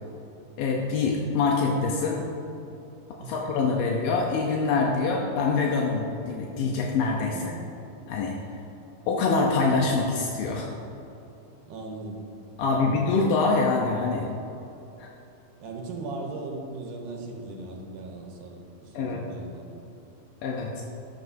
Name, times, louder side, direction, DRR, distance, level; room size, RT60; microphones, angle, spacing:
voice 1, 0.6-2.2 3.2-7.5 8.1-8.4 9.1-10.7 12.6-14.3 15.0-15.1 18.9-19.2 20.4-20.8, left 4 dB, 80° left, -1 dB, 2.5 m, -25 dB
voice 2, 3.2-3.5 7.3-7.6 11.7-12.2 12.6-13.0 15.6-19.8, right 2 dB, 70° right, 1 dB, 2.4 m, -38 dB
13.5 x 10.0 x 2.7 m, 2.9 s
omnidirectional pair, 4.0 m